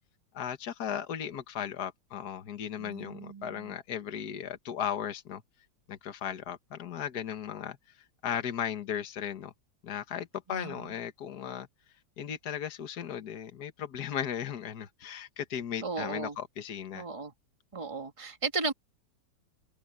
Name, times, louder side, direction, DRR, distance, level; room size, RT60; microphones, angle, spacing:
voice 1, 0.3-5.4 5.9-8.0 8.2-9.5 9.8-11.7 12.2-17.1, left 9 dB, 65° left, 1.9 m, -36 dB
voice 2, 2.8-3.8 10.5-10.9 15.8-16.4 16.9-17.3 17.7-18.7, right 4 dB, 20° right, 1.6 m, -36 dB
omnidirectional pair, 1.9 m